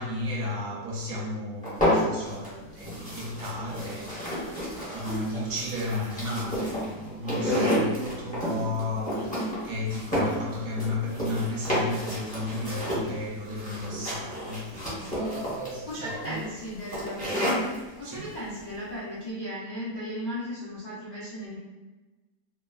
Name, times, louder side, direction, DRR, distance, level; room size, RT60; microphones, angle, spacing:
voice 1, 0.0-16.4 18.0-18.3, left 2 dB, 75° right, 1.0 m, -34 dB
sound 1, 1.6-2.5 2.8-17.8, equal, 10° left, 0.6 m, -30 dB
voice 2, 15.9-17.5 18.0-21.6, equal, 55° left, 0.4 m, -36 dB
3.0 x 2.0 x 2.3 m
omnidirectional pair, 1.5 m